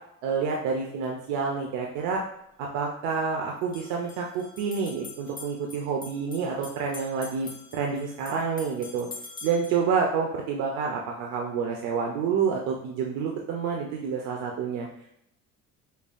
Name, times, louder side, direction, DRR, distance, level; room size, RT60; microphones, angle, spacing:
voice 1, 0.2-2.2 2.6-9.1 9.4-14.9, right 5 dB, 80° right, 0 dB, 0.6 m, -28 dB
sound 1, 1.9-2.0 3.6-9.8, left 3 dB, 15° left, 0.4 m, -45 dB
5.3 x 2.2 x 2.5 m, 0.76 s
cardioid pair, 170°, 30 cm